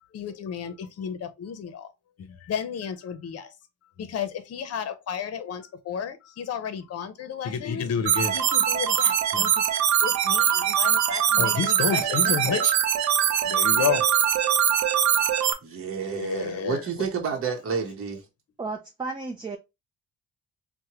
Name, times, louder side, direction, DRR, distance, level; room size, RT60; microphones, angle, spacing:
voice 1, 0.1-1.9 2.2-3.5 4.0-9.5 10.0-12.7 13.5-14.0 16.1-16.8, left 7 dB, 55° left, 0.7 m, -31 dB
sound 1, 8.1-15.5, right 9 dB, 65° right, 0.6 m, -22 dB
voice 2, 15.4-18.2, right 6 dB, 45° right, 0.9 m, -30 dB
voice 3, 18.6-19.6, right 3 dB, 15° right, 0.6 m, -33 dB
4.4 x 2.2 x 2.8 m
cardioid pair, 90°, 30 cm